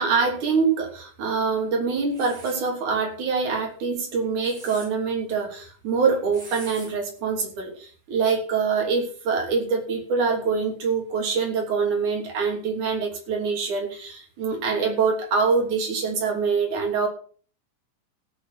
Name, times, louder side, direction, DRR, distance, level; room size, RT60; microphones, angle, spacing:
voice 1, 0.0-17.1, right 5 dB, 70° right, 2 dB, 4.6 m, -25 dB
sound 1, 2.1-2.6 4.2-4.9 6.3-6.9, right 2 dB, 45° right, 7.5 m, -42 dB
16.0 x 7.0 x 5.8 m, 0.43 s
omnidirectional pair, 3.6 m